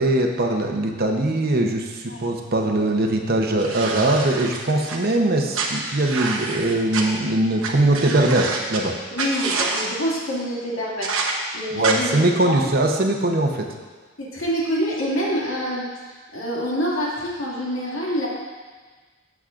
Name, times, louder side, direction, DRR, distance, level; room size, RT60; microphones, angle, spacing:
voice 1, 0.0-8.9 11.7-13.7, right 1 dB, 50° right, 2 dB, 0.9 m, -21 dB
sound 1, 3.6-5.0 5.5-7.0 7.6-7.7 7.9-8.8 9.2-9.9 11.0-11.3 11.8-11.9, right 4 dB, 80° right, 1.1 m, -27 dB
voice 2, 9.1-11.2 11.5-12.6 14.2-15.9 16.3-18.3, equal, 75° left, -5 dB, 2.4 m, -26 dB
14.5 x 7.2 x 2.5 m, 1.4 s
head